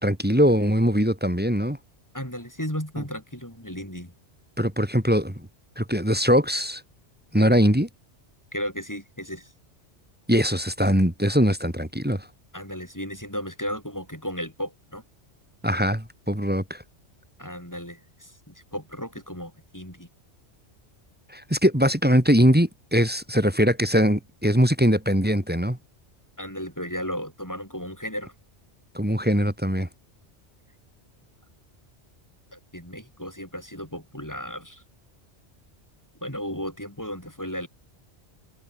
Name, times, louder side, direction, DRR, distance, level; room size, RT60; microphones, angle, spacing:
voice 1, 0.0-1.8 4.6-5.3 5.8-6.8 7.3-7.9 10.3-12.2 15.6-16.8 21.3-25.8 28.9-29.9, equal, 10° right, 2.1 m, -21 dB
voice 2, 2.1-4.1 8.5-9.5 12.5-15.0 17.4-20.1 26.4-28.3 32.5-34.8 36.2-37.7, equal, 15° left, 7.6 m, -34 dB
omnidirectional pair, 1.2 m